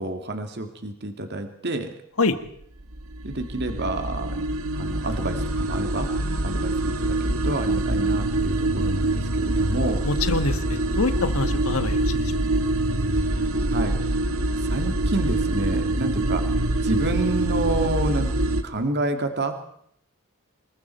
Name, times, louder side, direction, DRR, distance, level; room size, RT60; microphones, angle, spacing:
voice 1, 0.0-1.9 3.2-4.4 4.7-6.1 6.4-7.2 7.4-10.0 13.7-14.1 14.6-18.3 18.6-19.6, right 2 dB, 55° right, 6 dB, 2.2 m, -29 dB
sound 1, 2.6-18.6, right 2 dB, 85° right, 1.8 m, -25 dB
voice 2, 10.0-12.4, left 3 dB, 85° left, 9 dB, 1.8 m, -25 dB
26.5 x 22.0 x 4.5 m, 0.66 s
head